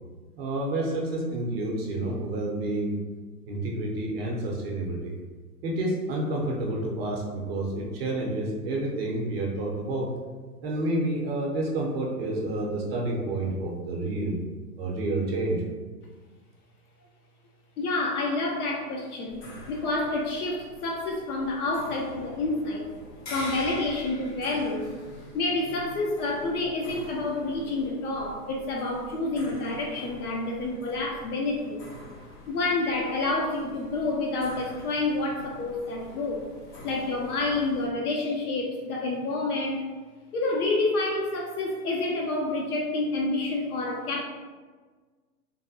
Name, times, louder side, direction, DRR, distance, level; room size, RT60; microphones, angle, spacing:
voice 1, 0.4-2.9 3.5-5.1 5.6-10.1 10.6-14.4 14.8-15.6, right 2 dB, 40° right, -2 dB, 0.5 m, -29 dB
voice 2, 17.8-22.9 23.3-24.9 25.3-31.9 32.5-36.5 36.8-39.8 40.3-44.2, left 2 dB, 65° left, 0 dB, 0.6 m, -28 dB
sound 1, 19.3-37.9, left 1 dB, 90° left, 0.9 m, -45 dB
3.2 x 2.1 x 2.6 m, 1.4 s
hypercardioid pair, 125°, 48 cm